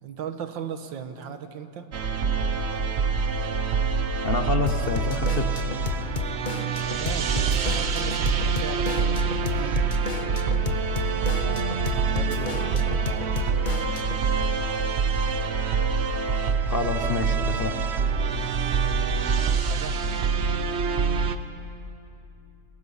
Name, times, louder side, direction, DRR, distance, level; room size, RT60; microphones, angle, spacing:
voice 1, 0.0-1.9 6.8-10.2 11.2-13.4 18.3-18.8 19.5-20.0, right 7 dB, 80° right, 8 dB, 1.8 m, -37 dB
sound 1, 1.9-21.4, right 5 dB, 55° right, 0.8 m, -25 dB
voice 2, 4.2-5.5 16.7-17.8, left 4 dB, 40° left, 5 dB, 0.9 m, -27 dB
Drum kit / Drum, 4.7-14.3, left 5 dB, 70° left, 0.4 m, -33 dB
29.0 x 21.0 x 5.7 m, 2.8 s
omnidirectional pair, 2.0 m